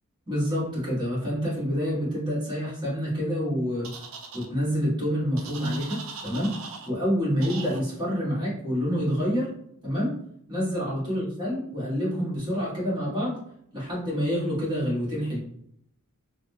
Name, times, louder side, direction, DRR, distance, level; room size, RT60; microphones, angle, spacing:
voice 1, 0.3-3.9 4.3-6.5 6.8-9.5 9.8-10.1 10.5-13.4 13.7-15.4, equal, 20° right, -8 dB, 1.5 m, -27 dB
sound 1, 3.8-4.5 5.4-6.9 7.4-7.8, right 5 dB, 65° right, 0.5 m, -40 dB
3.5 x 2.1 x 3.3 m, 0.72 s
head